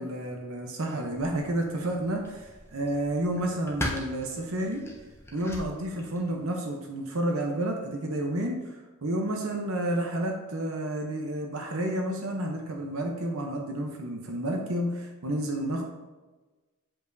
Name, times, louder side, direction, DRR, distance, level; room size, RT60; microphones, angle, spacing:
voice 1, 0.0-4.8 5.3-15.8, right 1 dB, 65° right, 2 dB, 0.8 m, -30 dB
sound 1, 1.1-6.5, left 1 dB, 10° left, 0.8 m, -40 dB
7.2 x 5.2 x 2.6 m, 1.2 s
head